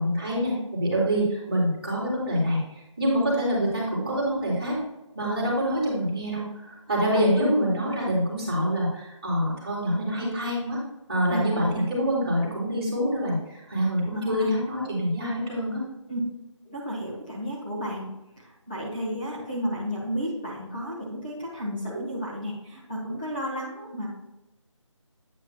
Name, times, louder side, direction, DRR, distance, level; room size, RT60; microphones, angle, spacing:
voice 1, 0.0-4.8 5.1-10.8 11.1-15.8, equal, 15° right, -9 dB, 3.0 m, -26 dB
voice 2, 7.1-7.4 11.3-11.8 14.3-14.5 16.1-16.2 16.6-18.1 18.7-24.1, equal, 15° left, -8 dB, 1.4 m, -32 dB
8.6 x 8.6 x 2.3 m, 0.94 s
figure-of-eight pair, 175°, 17 cm